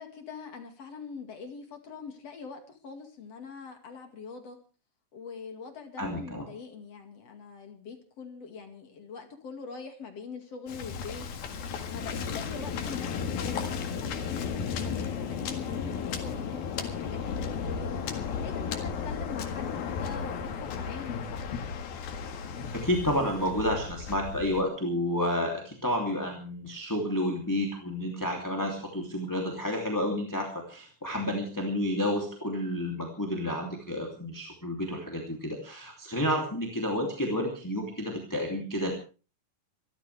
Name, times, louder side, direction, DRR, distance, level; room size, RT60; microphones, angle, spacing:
voice 1, 0.0-4.6 5.1-21.6, left 5 dB, 45° left, 5 dB, 3.0 m, -43 dB
voice 2, 6.0-6.4 22.7-38.9, left 1 dB, 5° left, 0 dB, 2.2 m, -30 dB
Waves surf, 10.7-24.6, left 6 dB, 75° left, 3.7 m, -34 dB
25.5 x 14.0 x 3.4 m, 0.36 s
omnidirectional pair, 4.3 m